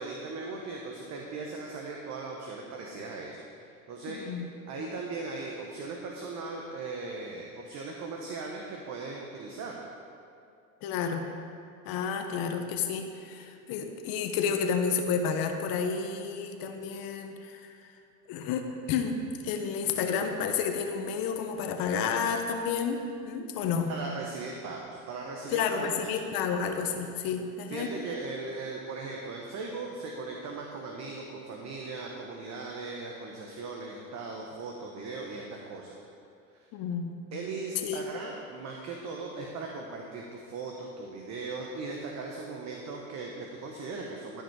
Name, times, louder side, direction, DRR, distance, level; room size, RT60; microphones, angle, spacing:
voice 1, 0.0-3.4 3.9-4.3 4.7-9.8 23.9-26.2 26.7-26.9 27.7-36.0 36.5-36.6 37.3-44.4, right 3 dB, 40° right, 0 dB, 1.1 m, -38 dB
voice 2, 4.1-4.5 10.8-11.3 11.8-17.6 18.3-23.9 25.5-27.9 36.7-37.1 37.8-38.0, left 6 dB, 55° left, 5 dB, 1.0 m, -31 dB
13.0 x 5.2 x 4.7 m, 2.4 s
supercardioid pair, 105°, 42 cm